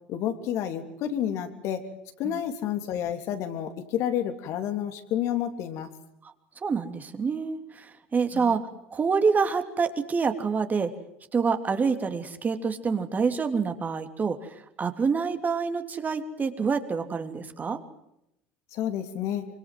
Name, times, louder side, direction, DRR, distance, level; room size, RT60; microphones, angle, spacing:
voice 1, 0.1-1.9 2.2-5.9 8.3-8.6 18.7-19.5, left 10 dB, 55° left, 7 dB, 3.3 m, -30 dB
voice 2, 6.6-10.9 11.3-17.8, right 5 dB, 30° right, 7 dB, 3.1 m, -27 dB
25.5 x 25.5 x 7.8 m, 0.81 s
hypercardioid pair, 75°, 6 cm